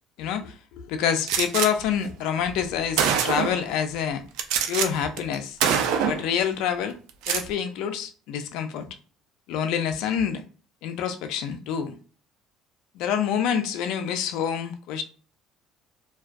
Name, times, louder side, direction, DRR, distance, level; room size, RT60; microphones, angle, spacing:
voice 1, 0.2-4.2 4.7-5.6 6.0-7.0 7.3-8.9 9.5-10.4 10.8-12.0 13.0-15.0, left 8 dB, 75° left, 0.3 m, -27 dB
Gunshot gunfire, 1.3-1.7 2.5-2.6 3.0-3.7 4.4-4.9 5.2-5.4 5.6-6.3 7.1-7.5, right 8 dB, 80° right, 0.4 m, -24 dB
2.2 x 2.2 x 2.5 m
cardioid pair, 100°, 0 cm